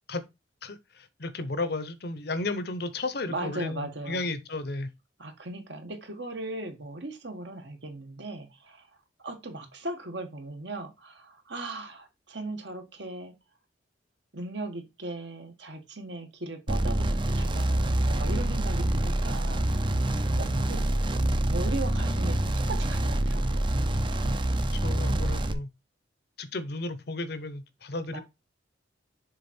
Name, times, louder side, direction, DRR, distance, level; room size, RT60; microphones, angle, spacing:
voice 1, 0.6-4.9 20.3-20.9 24.5-25.7 26.4-28.2, left 2 dB, 55° left, 0.8 m, -34 dB
voice 2, 3.3-4.3 5.2-8.9 9.2-13.3 14.3-20.9 21.5-23.7 28.1-28.2, right 2 dB, 65° right, 1.4 m, -38 dB
sound 1, 16.7-25.5, right 1 dB, 25° right, 0.6 m, -26 dB
6.9 x 3.7 x 4.3 m
head